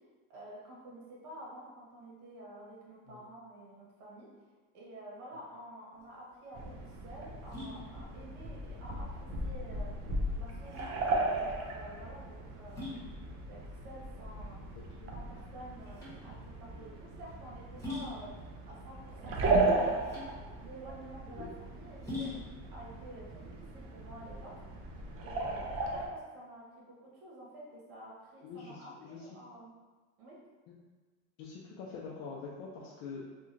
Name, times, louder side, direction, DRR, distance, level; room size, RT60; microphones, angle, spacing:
voice 1, 0.3-4.3 4.7-9.9 10.3-14.8 15.1-16.3 16.6-18.3 18.6-24.8 25.2-29.7 30.2-30.4, right 1 dB, 80° right, -5 dB, 1.2 m, -50 dB
sound 1, 5.9-24.5, left 2 dB, 5° left, 1.1 m, -46 dB
sound 2, 6.5-26.1, right 2 dB, 35° right, 0.4 m, -36 dB
voice 2, 28.4-29.3 30.7-30.8 31.4-33.3, left 5 dB, 60° left, -4 dB, 0.6 m, -45 dB
2.9 x 2.4 x 2.5 m, 1.3 s
supercardioid pair, 120°, 43 cm